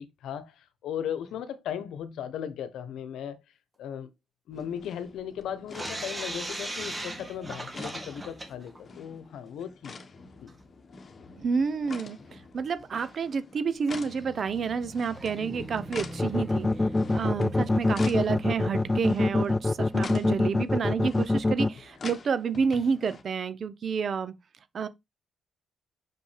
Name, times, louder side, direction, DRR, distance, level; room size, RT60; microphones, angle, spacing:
voice 1, 0.0-3.4 3.8-4.1 4.5-10.0 10.4-10.5 17.0-17.4, left 9 dB, 80° left, 1.0 m, -37 dB
sound 1, 4.5-23.2, left 4 dB, 40° left, 1.2 m, -47 dB
sound 2, 5.7-8.8 9.1-9.2 9.5-9.6 10.5-10.6 11.6-11.7 12.2-12.3 12.7-12.8 13.9-19.5, right 1 dB, 20° right, 1.8 m, -40 dB
voice 2, 11.4-16.7 17.1-24.3 24.7-24.9, right 5 dB, 50° right, 0.8 m, -29 dB
sound 3, 16.2-21.7, left 2 dB, 20° left, 0.4 m, -24 dB
6.2 x 5.3 x 3.3 m
cardioid pair, 90°, 0 cm